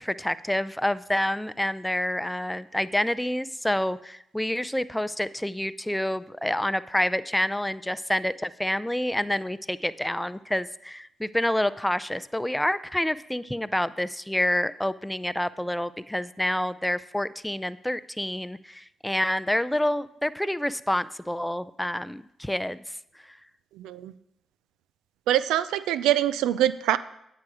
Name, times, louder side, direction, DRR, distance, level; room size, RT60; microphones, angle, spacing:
voice 1, 0.0-22.8, left 1 dB, 5° left, 16 dB, 0.5 m, -28 dB
voice 2, 23.8-24.1 25.3-27.0, right 12 dB, 90° right, 15 dB, 0.4 m, -24 dB
9.5 x 7.8 x 4.8 m, 0.78 s
supercardioid pair, 55°, 0 cm